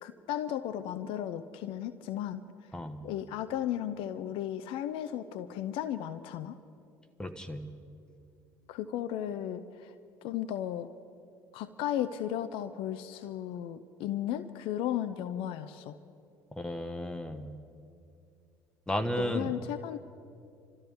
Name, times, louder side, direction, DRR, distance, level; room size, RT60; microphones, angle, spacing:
voice 1, 0.0-2.4 3.0-6.6 8.7-9.9 10.2-10.9 11.5-16.0 19.2-20.0, left 11 dB, 60° left, 10 dB, 0.6 m, -35 dB
voice 2, 7.2-7.6 16.5-17.5 18.9-19.5, equal, 10° left, 7 dB, 1.3 m, -33 dB
27.5 x 13.5 x 3.6 m, 2.4 s
figure-of-eight pair, 60°, 10 cm